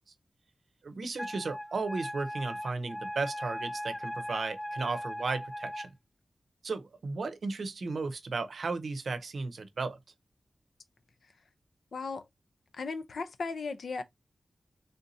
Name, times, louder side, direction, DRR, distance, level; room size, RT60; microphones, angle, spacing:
voice 1, 0.8-5.9 6.6-10.0, right 3 dB, 65° right, 0.6 m, -35 dB
Wind instrument woodwind instrument, 1.2-5.9, equal, 15° left, 0.3 m, -38 dB
voice 2, 11.9-12.3 12.7-14.0, left 4 dB, 75° left, 0.6 m, -36 dB
3.5 x 2.7 x 4.0 m
wide cardioid pair, 130°, 0 cm